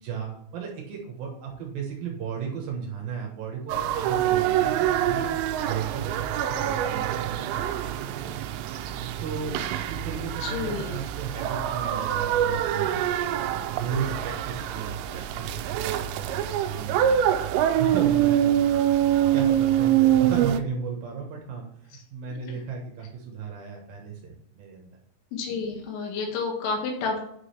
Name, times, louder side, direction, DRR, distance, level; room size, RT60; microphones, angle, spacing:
voice 1, 0.0-5.3 5.7-8.3 9.2-9.6 9.9-17.2 17.8-18.8 19.3-24.9, right 6 dB, 70° right, 0 dB, 2.4 m, -35 dB
sound 1, 3.7-20.6, right 11 dB, 90° right, 2.5 m, -25 dB
voice 2, 10.4-11.0 25.3-27.2, left 4 dB, 90° left, 1 dB, 4.2 m, -30 dB
9.3 x 4.9 x 3.3 m, 0.73 s
omnidirectional pair, 5.7 m